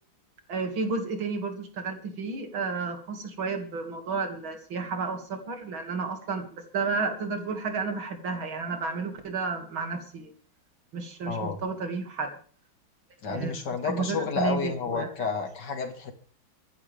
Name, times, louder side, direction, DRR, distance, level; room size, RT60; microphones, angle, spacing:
voice 1, 0.5-10.3 10.9-12.3 13.3-15.1, right 4 dB, 75° right, 5 dB, 3.1 m, -32 dB
voice 2, 11.3-11.6 13.2-16.1, left 5 dB, 60° left, 7 dB, 2.5 m, -30 dB
24.5 x 11.0 x 3.5 m, 0.43 s
omnidirectional pair, 2.2 m